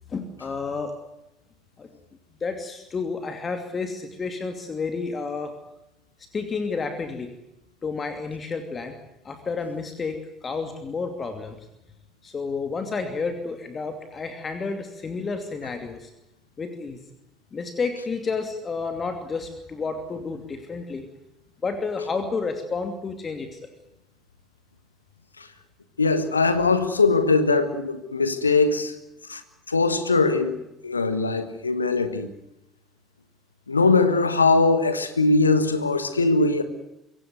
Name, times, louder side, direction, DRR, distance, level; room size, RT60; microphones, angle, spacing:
voice 1, 0.1-0.9 1.8-1.9 2.4-5.5 6.3-7.3 7.8-8.9 9.2-11.6 12.2-16.1 16.6-17.0 17.5-21.1 21.6-23.6, left 4 dB, 30° left, 7 dB, 2.7 m, -30 dB
voice 2, 26.0-28.9 29.3-29.4 29.7-30.6 30.8-32.4 33.7-36.6, left 3 dB, 85° left, 11 dB, 1.6 m, -21 dB
24.5 x 17.0 x 9.3 m, 0.89 s
figure-of-eight pair, 60°, 0 cm